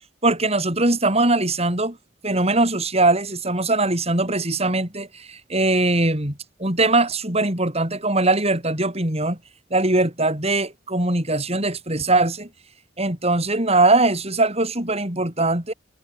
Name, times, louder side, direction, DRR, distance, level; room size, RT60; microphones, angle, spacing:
voice 1, 0.2-2.0 2.2-9.4 9.7-12.5 13.0-15.7, right 2 dB, 35° right, 6.8 m, -21 dB
head